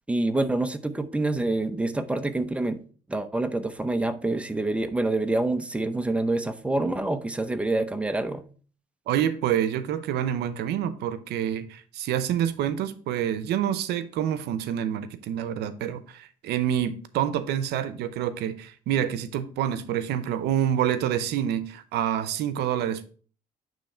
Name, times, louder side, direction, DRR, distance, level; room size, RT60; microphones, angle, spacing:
voice 1, 0.1-2.8 3.1-8.4, right 2 dB, 5° right, 0.6 m, -26 dB
voice 2, 9.1-23.0, right 10 dB, 80° right, 0.7 m, -27 dB
8.8 x 3.2 x 4.3 m
cardioid pair, 110°, 17 cm